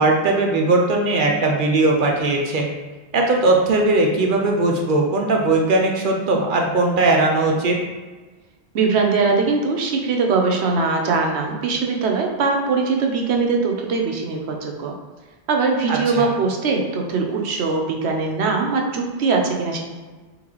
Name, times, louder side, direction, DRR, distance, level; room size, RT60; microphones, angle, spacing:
voice 1, 0.0-2.7 3.1-7.8 15.9-16.3, right 2 dB, 55° right, 1 dB, 0.7 m, -19 dB
voice 2, 8.7-14.9 15.5-19.8, right 4 dB, 80° right, 2 dB, 0.9 m, -21 dB
3.8 x 3.7 x 3.0 m, 1.3 s
omnidirectional pair, 1.1 m